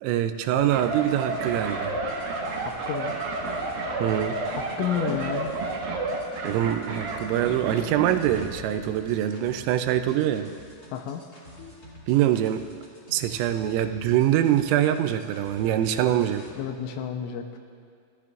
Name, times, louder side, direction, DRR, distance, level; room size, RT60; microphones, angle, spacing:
voice 1, 0.0-2.0 4.0-4.4 6.4-10.5 12.1-12.6 13.1-16.5, right 11 dB, 85° right, 9 dB, 3.2 m, -24 dB
sound 1, 0.6-16.6, left 1 dB, 35° left, 1.6 m, -48 dB
sound 2, 0.7-8.5 8.8-9.0, right 3 dB, 65° right, 2.6 m, -31 dB
voice 2, 2.5-3.2 4.6-5.6 10.9-11.2 16.6-17.6, left 9 dB, 85° left, 5 dB, 3.1 m, -31 dB
30.0 x 13.5 x 2.5 m, 2.2 s
omnidirectional pair, 5.9 m